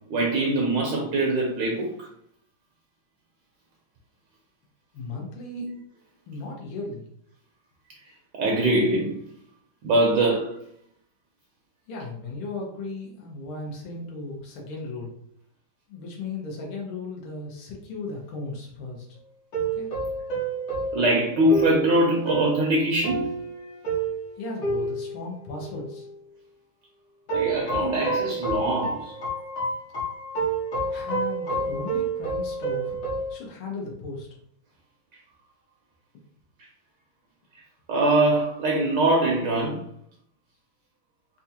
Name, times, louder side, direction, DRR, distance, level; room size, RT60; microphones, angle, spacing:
voice 1, 0.1-2.1 5.6-5.7 8.4-9.2 9.8-10.6 20.9-23.2 27.3-29.1 37.9-39.8, right 1 dB, 70° right, -1 dB, 1.2 m, -23 dB
voice 2, 4.9-5.7 6.3-7.1 11.9-15.1 15.9-19.1 19.6-19.9 24.4-26.1 30.9-33.0 33.3-34.3, left 3 dB, 85° left, -2 dB, 1.7 m, -36 dB
sound 1, 19.5-26.1 27.3-33.3, right 2 dB, 65° left, 1.9 m, -29 dB
4.2 x 2.4 x 2.7 m, 0.68 s
omnidirectional pair, 2.3 m